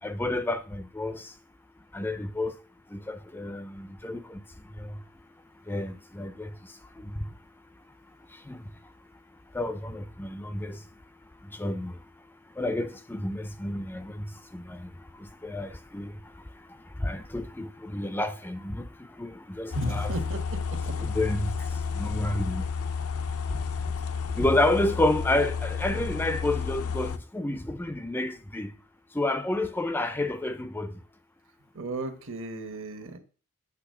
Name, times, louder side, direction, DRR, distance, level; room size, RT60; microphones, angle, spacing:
voice 1, 0.0-1.3 1.9-2.6 2.9-5.0 5.7-7.3 8.3-8.7 9.5-10.8 11.4-12.0 12.6-22.7 23.5-23.9 24.3-28.7 29.1-31.0, left 1 dB, 10° left, 0.4 m, -31 dB
sound 1, 19.7-27.2, left 5 dB, 75° left, 0.5 m, -31 dB
voice 2, 19.7-21.0 31.7-33.2, right 1 dB, 60° right, 1.3 m, -35 dB
8.2 x 3.2 x 6.4 m
head